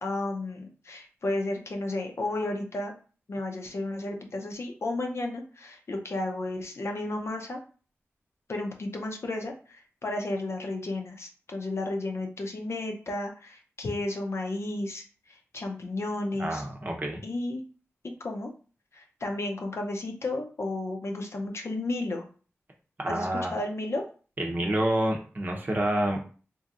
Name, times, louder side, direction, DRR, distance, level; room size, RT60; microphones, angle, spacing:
voice 1, 0.0-2.9 3.3-7.6 8.5-16.6 17.2-17.6 18.0-18.5 18.9-22.3 23.1-24.0, left 2 dB, 60° left, 3 dB, 0.6 m, -33 dB
voice 2, 16.4-17.2 23.0-23.5 24.4-26.2, right 1 dB, 35° right, 1 dB, 0.8 m, -28 dB
2.9 x 2.7 x 2.4 m, 0.38 s
cardioid pair, 45°, 5 cm